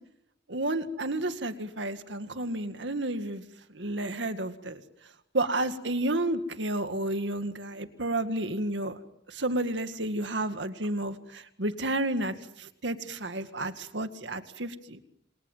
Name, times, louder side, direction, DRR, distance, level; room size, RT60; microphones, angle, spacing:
voice 1, 0.5-3.4 3.7-4.8 5.3-9.0 9.3-15.0, right 1 dB, 75° right, 9 dB, 2.1 m, -31 dB
29.0 x 27.0 x 7.4 m, 0.78 s
head